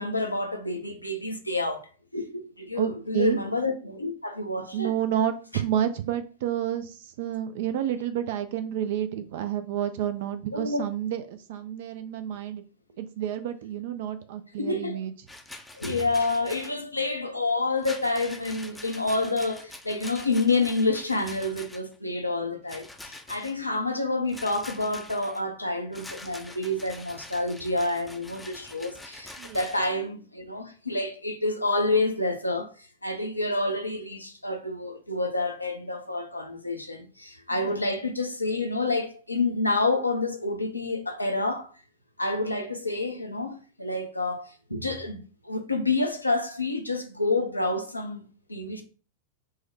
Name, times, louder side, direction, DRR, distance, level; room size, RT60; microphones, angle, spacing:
voice 1, 0.0-4.9 10.5-10.8 14.6-15.0 15.7-41.7 42.2-48.8, left 2 dB, 85° left, 0.5 m, -28 dB
voice 2, 2.8-3.4 4.7-12.6 13.0-15.1 29.4-29.6 37.5-37.8, right 10 dB, 55° right, 0.3 m, -30 dB
Rattle, 15.3-16.8 17.8-22.0 22.7-23.6 24.3-25.4 25.9-29.9, left 2 dB, 5° left, 0.5 m, -45 dB
4.6 x 2.1 x 3.1 m
figure-of-eight pair, 90°, 0 cm